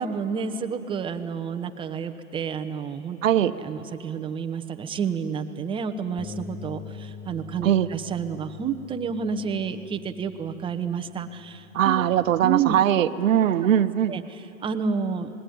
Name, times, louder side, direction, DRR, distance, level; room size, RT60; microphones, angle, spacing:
voice 1, 0.0-3.2 3.6-12.0 12.4-12.7 13.4-13.5 14.1-15.3, right 6 dB, 10° right, 6 dB, 1.0 m, -30 dB
voice 2, 3.2-3.5 7.6-7.9 11.7-14.1, right 10 dB, 65° right, 10 dB, 1.1 m, -21 dB
Bass guitar, 6.2-12.4, left 5 dB, 45° left, 1.9 m, -44 dB
28.5 x 20.0 x 9.4 m, 2.8 s
hypercardioid pair, 130°, 42 cm